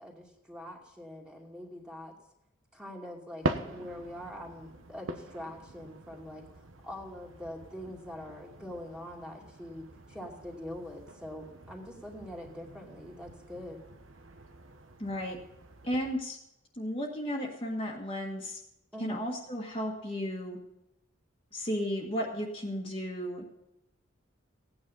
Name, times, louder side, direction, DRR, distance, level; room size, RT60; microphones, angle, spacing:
voice 1, 0.0-2.1 2.7-13.8 18.9-19.2, equal, 5° right, -1 dB, 2.5 m, -44 dB
sound 1, 3.4-16.2, right 2 dB, 80° right, 1.2 m, -43 dB
voice 2, 15.0-15.4 15.8-16.4 16.8-18.6 19.0-20.6 21.5-23.5, equal, 25° left, -2 dB, 1.7 m, -34 dB
16.5 x 9.7 x 5.5 m, 0.84 s
head